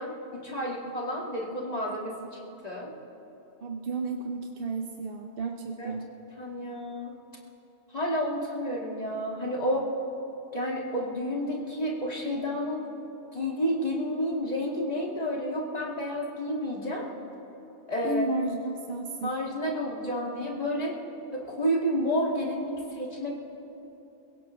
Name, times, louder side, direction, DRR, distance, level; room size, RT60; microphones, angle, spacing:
voice 1, 0.0-2.9 5.8-5.9 6.4-7.2 7.9-9.9 10.5-12.9 13.3-17.1 17.9-18.2 19.2-20.9 21.3-23.4, equal, 35° left, -2 dB, 2.1 m, -30 dB
voice 2, 3.6-6.1 18.0-19.3, right 3 dB, 55° right, 2 dB, 1.0 m, -32 dB
28.0 x 16.5 x 3.1 m, 3.0 s
omnidirectional pair, 1.2 m